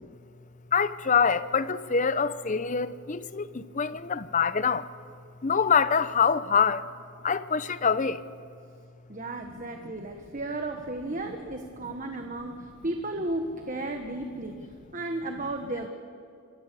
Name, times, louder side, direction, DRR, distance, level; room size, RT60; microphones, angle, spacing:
voice 1, 0.7-4.9 5.4-6.9 7.2-8.2, left 6 dB, 35° left, 0.7 m, -25 dB
voice 2, 9.1-15.9, right 2 dB, 35° right, 1.3 m, -34 dB
26.0 x 24.5 x 6.8 m
head